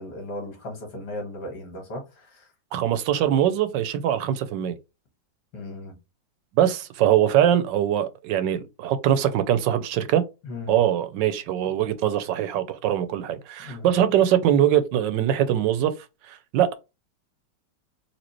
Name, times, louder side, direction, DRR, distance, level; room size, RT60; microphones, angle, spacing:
voice 1, 0.0-2.5 5.5-5.9 10.4-10.8 13.6-13.9, left 1 dB, 65° left, 2.1 m, -36 dB
voice 2, 2.7-4.7 6.5-10.2 10.7-15.9 16.3-16.7, right 11 dB, 75° right, 1.2 m, -22 dB
4.2 x 2.8 x 3.0 m
omnidirectional pair, 2.0 m